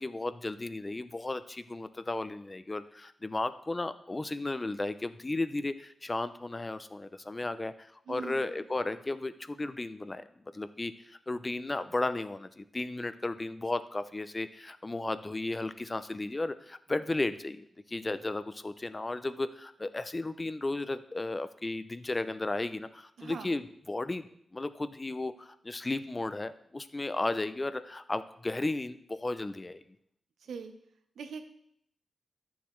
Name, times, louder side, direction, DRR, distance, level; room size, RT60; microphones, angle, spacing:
voice 1, 0.0-10.2 10.5-29.8, left 2 dB, 20° left, 12 dB, 0.4 m, -34 dB
voice 2, 8.1-8.6 23.2-23.5 30.4-30.7 31.2-31.5, right 5 dB, 85° right, 8 dB, 0.8 m, -42 dB
11.5 x 7.0 x 3.2 m, 0.69 s
wide cardioid pair, 150°, 0 cm